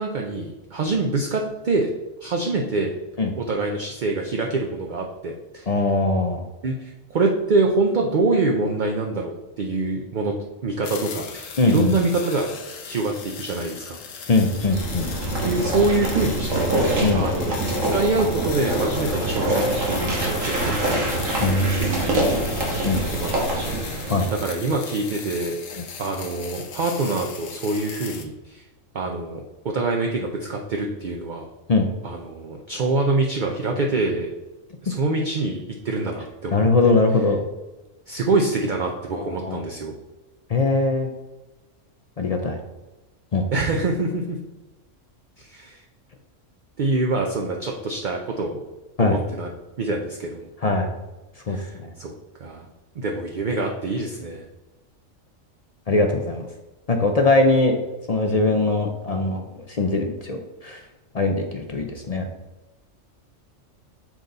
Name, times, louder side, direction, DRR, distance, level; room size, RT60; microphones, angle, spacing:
voice 1, 0.0-1.9 2.2-2.9 3.4-5.7 6.6-10.3 10.6-12.5 12.9-14.0 15.4-16.7 17.1-17.5 17.9-20.8 21.8-22.8 23.1-28.6 28.9-31.5 32.0-34.3 34.8-35.6 35.8-36.9 38.1-39.9 43.5-44.4 45.4-45.8 46.8-48.6 49.0-49.5 49.8-50.5 51.5-52.1 52.4-52.7 53.0-54.4, right 3 dB, 50° right, 2 dB, 0.6 m, -25 dB
voice 2, 5.7-6.4 11.6-11.9 14.3-15.1 17.0-17.3 21.4-21.9 22.8-23.0 24.1-24.3 25.7-25.8 31.7-31.9 36.5-37.4 39.1-39.6 40.5-41.1 42.2-42.6 43.3-43.6 49.0-49.2 50.6-50.9 51.5-51.9 55.9-56.5 56.9-57.8 58.1-60.8 61.1-62.3, left 3 dB, 45° left, 3 dB, 0.5 m, -21 dB
sound 1, 10.8-28.2, left 6 dB, 85° left, 1.2 m, -38 dB
sound 2, 14.4-24.4, right 1 dB, 90° right, 1.8 m, -25 dB
7.3 x 3.9 x 3.9 m, 1.1 s
omnidirectional pair, 1.3 m